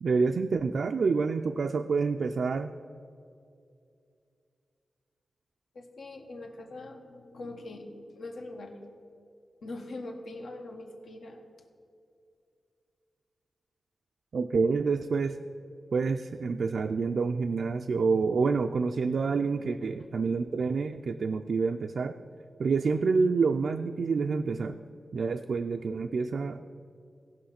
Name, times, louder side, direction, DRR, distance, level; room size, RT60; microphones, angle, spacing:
voice 1, 0.0-2.7 14.3-15.4 15.9-22.1 22.6-24.8 25.1-26.6, right 4 dB, 65° right, 6 dB, 0.3 m, -27 dB
voice 2, 5.7-8.7 9.6-11.4, left 2 dB, 80° left, 2 dB, 1.2 m, -42 dB
16.5 x 5.8 x 5.8 m, 2.4 s
wide cardioid pair, 160°, 0 cm